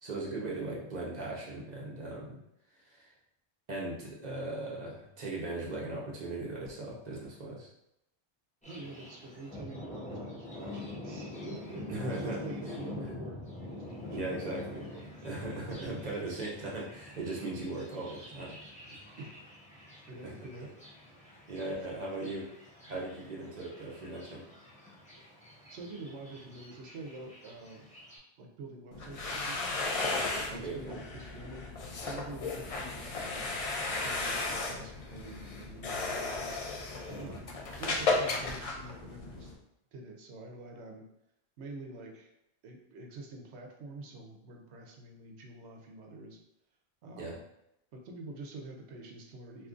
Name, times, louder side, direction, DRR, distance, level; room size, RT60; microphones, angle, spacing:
voice 1, 0.0-2.4 2.9-3.1 3.7-7.7 11.9-12.4 14.1-14.9 15.2-18.6 21.5-22.5 22.9-24.4 30.5-31.0 37.1-37.4 47.2-47.3, right 2 dB, 45° right, -3 dB, 0.8 m, -38 dB
Thunder, 8.6-28.2, left 1 dB, 5° left, 0.9 m, -46 dB
voice 2, 8.7-14.4 14.6-15.1 19.2-19.3 20.1-20.7 21.6-21.8 25.7-27.9 28.4-29.8 30.1-33.5 33.8-37.5 37.8-39.5 39.9-41.1 41.6-42.3 42.6-46.4 47.0-47.4 47.9-49.7, right 2 dB, 80° right, 2 dB, 0.9 m, -47 dB
sound 1, 28.9-39.5, left 3 dB, 55° left, 0.4 m, -35 dB
2.8 x 2.4 x 3.7 m, 0.82 s
omnidirectional pair, 1.1 m